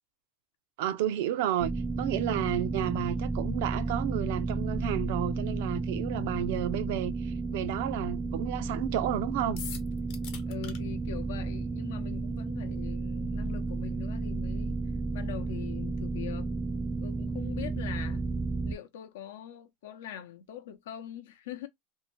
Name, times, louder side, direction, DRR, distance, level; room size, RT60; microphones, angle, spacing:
voice 1, 0.8-1.7 2.0-9.6, right 11 dB, 75° right, 0.5 m, -31 dB
sound 1, 1.6-18.7, right 3 dB, 5° right, 0.3 m, -32 dB
sound 2, 9.6-10.8, left 9 dB, 60° left, 0.9 m, -41 dB
voice 2, 10.4-14.8 15.1-16.5 17.0-18.2 18.6-21.7, left 9 dB, 85° left, 0.7 m, -43 dB
2.7 x 2.1 x 3.0 m
supercardioid pair, 120°, 0 cm